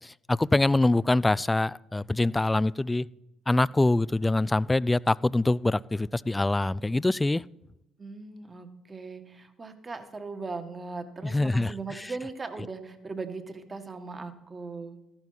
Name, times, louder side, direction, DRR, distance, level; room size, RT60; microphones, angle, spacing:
voice 1, 0.0-3.1 3.5-7.5 11.2-12.1, left 2 dB, 15° left, 21 dB, 0.3 m, -24 dB
voice 2, 8.0-15.0, right 4 dB, 30° right, 7 dB, 1.6 m, -39 dB
14.0 x 12.0 x 4.1 m, 0.92 s
supercardioid pair, 65°, 0 cm